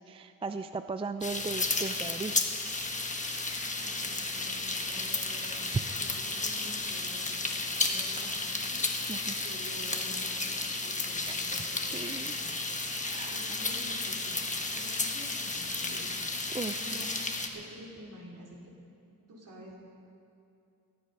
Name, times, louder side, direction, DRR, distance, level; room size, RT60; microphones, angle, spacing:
voice 1, 0.0-2.5 5.7-6.0 9.1-9.4 11.2-11.3 11.9-12.3 13.0-13.4 16.5-16.8 17.1-17.2, right 4 dB, 15° right, 10 dB, 0.3 m, -36 dB
sound 1, 1.2-17.5, left 3 dB, 20° left, 1.1 m, -33 dB
voice 2, 3.7-12.7 13.3-14.4 14.7-16.1 16.8-18.6 18.9-19.0 19.3-19.8, equal, 60° right, -3 dB, 3.5 m, -49 dB
17.5 x 12.0 x 5.5 m, 2.6 s
wide cardioid pair, 125°, 35 cm